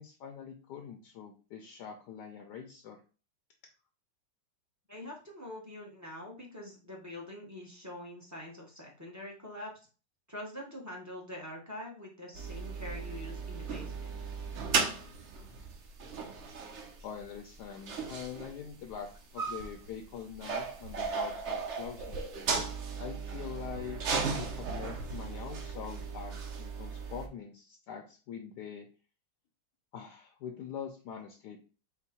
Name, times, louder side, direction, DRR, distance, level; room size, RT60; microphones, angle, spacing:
voice 1, 0.0-3.0 17.0-22.2 23.0-24.0 24.3-28.9 29.9-31.6, left 8 dB, 70° left, 4 dB, 1.1 m, -44 dB
voice 2, 4.9-9.7 10.3-14.2, left 1 dB, 15° right, -2 dB, 0.6 m, -44 dB
sound 1, 12.3-27.3, right 5 dB, 65° right, 0.7 m, -36 dB
4.5 x 2.2 x 4.2 m, 0.35 s
omnidirectional pair, 2.0 m